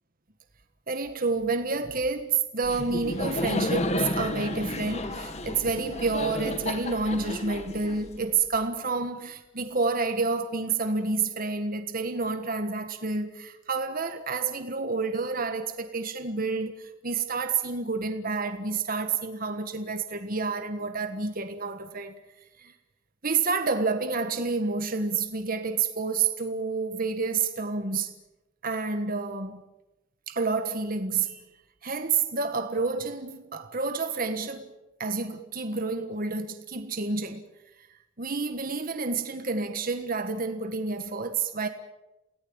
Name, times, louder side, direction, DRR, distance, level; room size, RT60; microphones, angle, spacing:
voice 1, 0.9-22.1 22.6-22.7 23.2-28.1 28.6-29.6 30.3-31.4 31.8-34.7 35.0-37.4 37.8-37.9 38.2-41.7, right 4 dB, 45° right, 1.6 m, -29 dB
Laughter, 2.6-8.5, left 1 dB, 35° left, 2.0 m, -32 dB
29.0 x 18.0 x 8.9 m
head